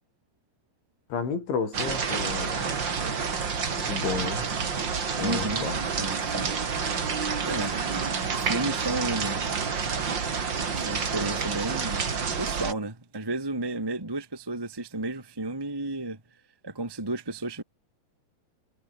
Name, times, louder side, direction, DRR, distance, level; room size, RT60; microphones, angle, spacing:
voice 1, 1.1-2.7 3.8-4.5 5.2-5.8, left 5 dB, 85° left, 9.0 m, -31 dB
sound 1, 1.7-12.7, right 5 dB, 35° right, 2.2 m, -29 dB
voice 2, 5.2-5.7 6.0-6.5 7.4-8.0 8.4-9.4 10.8-12.1 12.4-16.2 16.6-17.6, right 2 dB, 15° right, 0.7 m, -32 dB
omnidirectional pair, 5.2 m